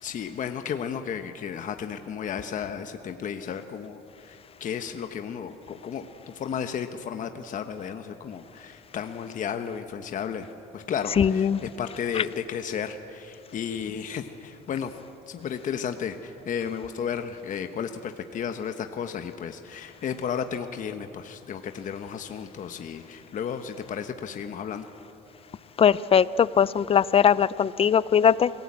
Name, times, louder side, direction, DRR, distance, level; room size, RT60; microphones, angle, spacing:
voice 1, 0.0-10.5 10.7-14.9 15.3-24.8, left 7 dB, 50° left, 7 dB, 1.1 m, -33 dB
voice 2, 11.2-11.6 25.8-28.5, left 8 dB, 35° left, 18 dB, 0.6 m, -20 dB
27.5 x 17.5 x 8.6 m, 2.8 s
cardioid pair, 110°, 17 cm